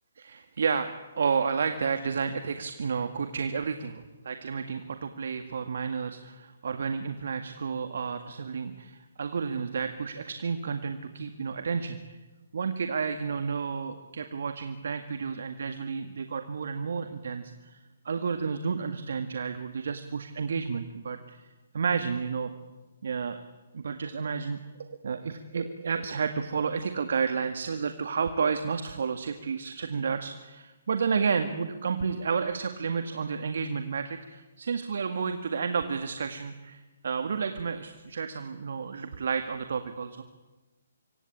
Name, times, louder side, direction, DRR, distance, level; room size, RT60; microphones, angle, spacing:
voice 1, 0.2-0.9 1.2-12.2 12.5-17.8 18.1-21.4 21.7-22.5 23.0-23.4 23.7-40.2, right 5 dB, 65° right, 8 dB, 1.9 m, -31 dB
25.5 x 25.0 x 8.7 m, 1.1 s
figure-of-eight pair, 140°, 0 cm